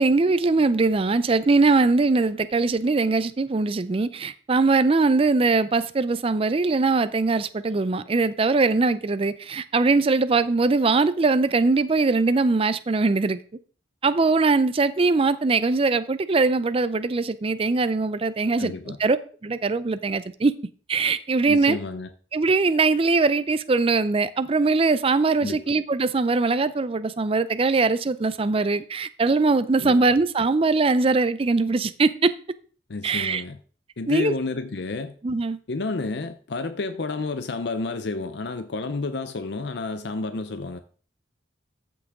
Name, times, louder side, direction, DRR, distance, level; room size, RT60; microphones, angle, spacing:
voice 1, 0.0-13.4 14.0-19.2 19.4-20.5 20.9-21.8 22.3-32.3 33.0-33.4 34.1-34.3 35.2-35.6, right 3 dB, 30° right, 0.4 m, -21 dB
voice 2, 18.6-19.0 21.5-22.1 25.4-25.6 29.8-30.0 32.9-33.6 34.0-35.1 35.7-40.8, left 3 dB, 60° left, 0.6 m, -30 dB
14.0 x 6.0 x 3.6 m
head